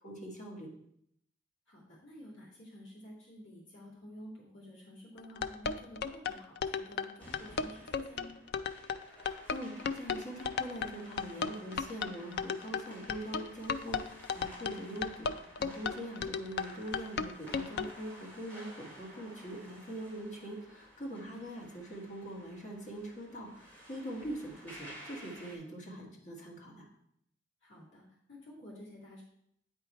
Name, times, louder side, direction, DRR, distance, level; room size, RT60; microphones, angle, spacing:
voice 1, 0.0-0.7 9.2-26.9, right 1 dB, 35° left, -2 dB, 1.7 m, -43 dB
voice 2, 1.7-8.4 21.2-21.4 27.6-29.2, equal, 70° left, -5 dB, 2.3 m, -51 dB
sound 1, 5.2-17.9, left 6 dB, 55° left, 0.3 m, -35 dB
sound 2, 7.2-25.6, equal, 10° left, 2.1 m, -54 dB
8.5 x 4.6 x 4.4 m, 0.73 s
head